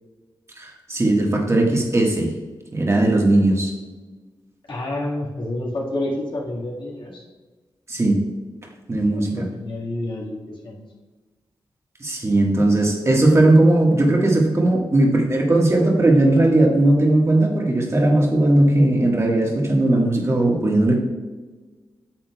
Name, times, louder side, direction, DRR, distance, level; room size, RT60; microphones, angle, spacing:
voice 1, 0.6-2.3 2.7-3.7 7.9-8.2 8.9-9.3 12.0-21.1, right 1 dB, 35° right, 0 dB, 1.5 m, -18 dB
voice 2, 4.7-7.2 9.1-10.8, left 1 dB, 65° left, -4 dB, 1.8 m, -29 dB
8.7 x 7.4 x 2.3 m, 1.3 s
cardioid pair, 75°, 9 cm